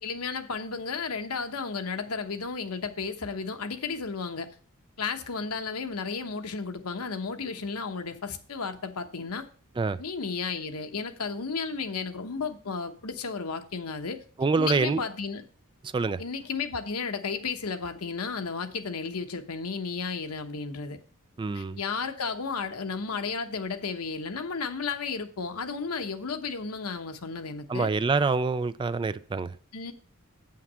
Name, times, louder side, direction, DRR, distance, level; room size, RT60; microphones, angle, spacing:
voice 1, 0.0-4.5 5.0-9.5 10.0-14.2 14.6-15.4 16.2-21.0 21.5-27.9 29.7-29.9, left 5 dB, 80° left, 1.0 m, -33 dB
voice 2, 14.4-15.0 15.9-16.2 21.4-21.8 27.7-29.5, right 4 dB, 20° right, 0.3 m, -26 dB
8.3 x 5.8 x 6.2 m
head